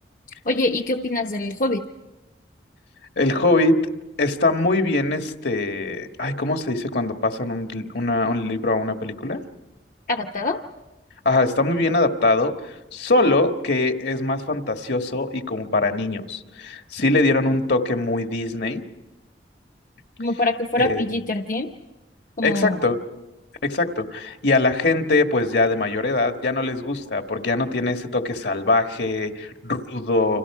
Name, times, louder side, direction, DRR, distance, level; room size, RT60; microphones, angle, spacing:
voice 1, 0.4-1.8 10.1-10.6 20.2-21.7 22.4-22.8, left 2 dB, 45° left, 3 dB, 0.8 m, -24 dB
voice 2, 3.2-3.8 4.2-9.4 11.2-12.5 12.9-18.8 20.8-21.0 22.4-23.0 23.6-30.4, left 2 dB, 70° left, 5 dB, 1.6 m, -22 dB
30.0 x 26.5 x 4.9 m, 1.0 s
head